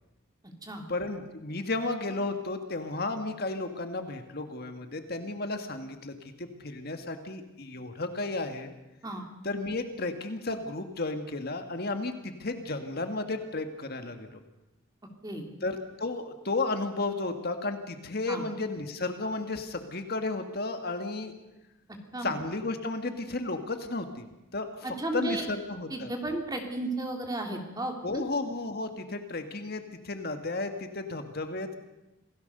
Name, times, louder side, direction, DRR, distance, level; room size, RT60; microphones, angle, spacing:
voice 1, 0.9-8.7 9.4-14.4 15.6-21.3 22.2-24.3 24.5-26.1 28.0-31.7, left 2 dB, 50° left, 7 dB, 1.8 m, -33 dB
voice 2, 24.8-25.4 25.9-28.2, right 2 dB, 20° right, 3 dB, 2.8 m, -33 dB
27.0 x 17.5 x 6.7 m, 0.97 s
head